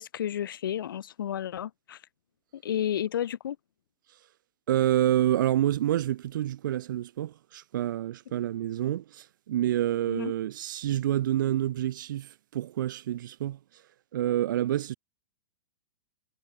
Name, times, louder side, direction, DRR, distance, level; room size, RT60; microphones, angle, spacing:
voice 1, 0.0-2.0 2.5-3.6 10.1-10.3, left 10 dB, 85° left, 0.7 m, -32 dB
voice 2, 4.7-13.6 14.1-14.9, right 12 dB, 70° right, 2.1 m, -28 dB
hypercardioid pair, 135°, 11 cm